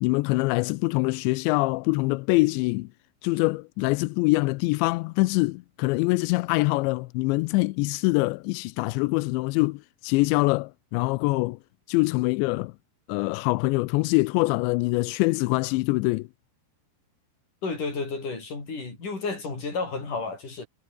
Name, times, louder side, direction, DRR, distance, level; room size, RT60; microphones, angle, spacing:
voice 1, 0.0-2.9 3.2-11.6 11.9-12.7 13.1-16.3, left 23 dB, 85° left, 2.6 m, -24 dB
voice 2, 17.6-20.7, left 4 dB, 40° left, 9.0 m, -32 dB
omnidirectional pair, 5.7 m